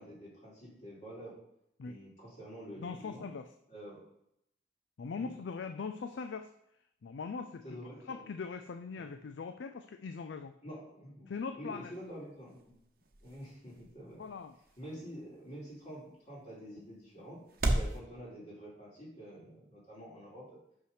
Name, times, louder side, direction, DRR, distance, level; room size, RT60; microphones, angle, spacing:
voice 1, 0.0-1.3 1.8-3.3 3.7-4.0 5.1-5.4 7.6-8.3 9.0-9.1 10.6-12.8 13.2-14.2 14.8-17.4 17.7-20.6, equal, 40° left, -6 dB, 2.8 m, -48 dB
voice 2, 2.8-3.5 5.0-6.5 7.0-7.8 8.1-10.5 11.3-11.9 14.2-14.5, left 5 dB, 90° left, 8 dB, 0.4 m, -41 dB
sound 1, 11.7-18.0, right 1 dB, 50° right, 0.9 m, -39 dB
5.8 x 5.7 x 4.9 m, 0.77 s
head